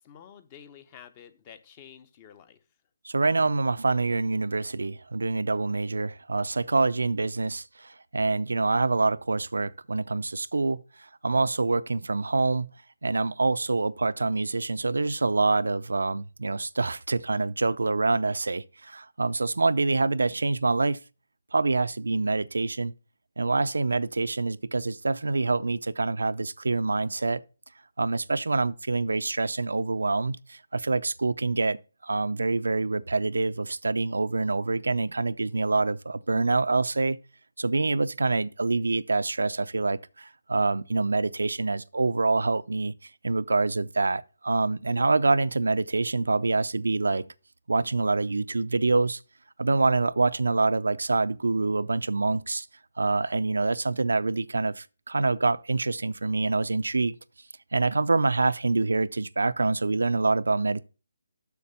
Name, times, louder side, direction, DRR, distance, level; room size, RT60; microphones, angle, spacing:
voice 1, 0.0-2.6, left 9 dB, 25° left, 0.8 m, -50 dB
voice 2, 3.0-10.8 11.2-12.7 13.0-21.0 21.5-22.9 23.4-27.4 28.0-31.8 32.0-37.2 37.6-42.9 43.2-47.3 47.7-49.2 49.6-52.7 53.0-57.2 57.7-60.8, right 3 dB, 85° right, 0.5 m, -26 dB
7.0 x 6.6 x 5.6 m
hypercardioid pair, 160°, 0 cm